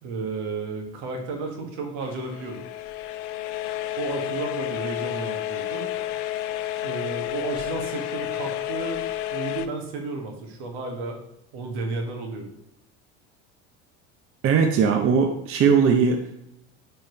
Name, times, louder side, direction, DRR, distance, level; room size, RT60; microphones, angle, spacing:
voice 1, 0.0-2.6 3.9-5.9 6.8-9.0 9.3-11.2 11.5-12.5, right 3 dB, 75° right, 2 dB, 1.9 m, -32 dB
sound 1, 2.0-9.7, left 13 dB, 75° left, 0.7 m, -31 dB
voice 2, 14.4-16.5, right 6 dB, 40° right, 3 dB, 0.8 m, -20 dB
9.7 x 4.4 x 3.3 m, 0.80 s
supercardioid pair, 115°, 35 cm